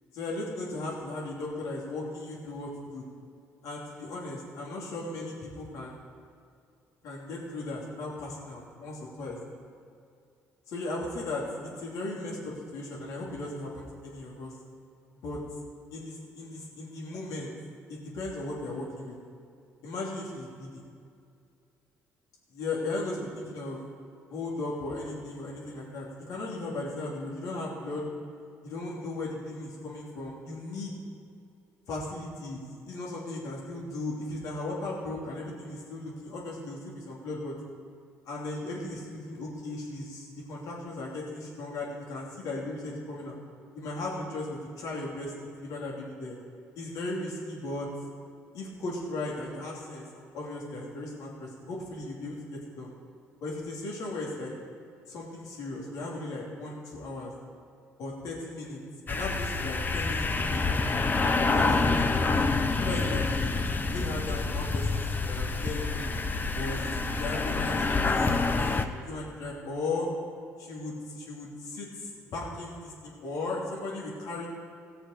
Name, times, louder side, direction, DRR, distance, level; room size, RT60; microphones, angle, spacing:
voice 1, 0.1-3.0 3.6-6.0 7.0-9.4 10.7-14.5 15.2-15.4 15.9-17.5 17.9-19.2 19.8-20.8 22.5-23.8 24.3-28.1 28.6-30.9 31.9-37.6 38.2-43.4 43.7-46.4 46.8-47.9 48.5-52.9 53.4-54.5 55.1-57.3 58.0-58.8 59.1-60.7 61.5-62.3 62.8-66.1 66.5-70.1 70.6-74.5, left 2 dB, 75° left, -3 dB, 3.0 m, -37 dB
sound 1, 59.1-68.8, left 3 dB, 30° left, 0.9 m, -27 dB
17.5 x 6.7 x 5.1 m, 2.4 s
supercardioid pair, 65°, 6 cm